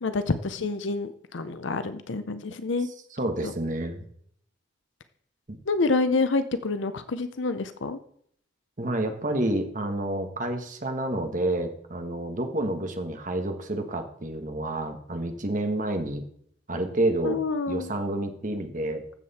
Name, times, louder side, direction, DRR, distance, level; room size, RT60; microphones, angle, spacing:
voice 1, 0.0-2.9 3.4-3.5 5.7-8.0 17.2-17.9, left 3 dB, 75° left, 11 dB, 0.7 m, -27 dB
voice 2, 3.1-4.1 5.5-5.6 8.8-16.2 16.7-17.4 17.7-19.0, right 1 dB, 40° right, 5 dB, 1.4 m, -29 dB
14.0 x 7.5 x 4.2 m, 0.66 s
head